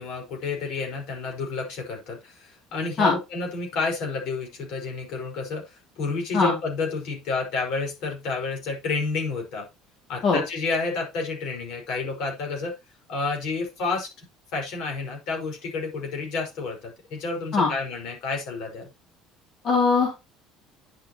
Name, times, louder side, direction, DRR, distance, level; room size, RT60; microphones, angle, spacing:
voice 1, 0.0-9.7 10.1-12.7 13.1-14.1 14.5-18.9, left 4 dB, 65° left, 1 dB, 5.3 m, -30 dB
voice 2, 19.6-20.1, left 4 dB, 40° left, -1 dB, 2.8 m, -20 dB
10.0 x 6.8 x 3.1 m, 0.24 s
cardioid pair, 140°, 0 cm